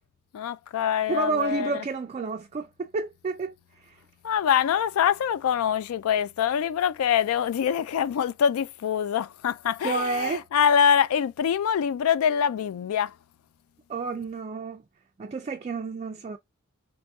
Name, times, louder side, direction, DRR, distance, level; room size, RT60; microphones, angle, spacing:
voice 1, 0.3-1.7 4.2-13.1, left 8 dB, 70° left, 0.3 m, -24 dB
voice 2, 1.1-3.5 3.8-4.0 9.8-10.4 13.9-14.8 15.2-16.4, right 4 dB, 30° right, 0.3 m, -30 dB
2.9 x 2.5 x 3.5 m
head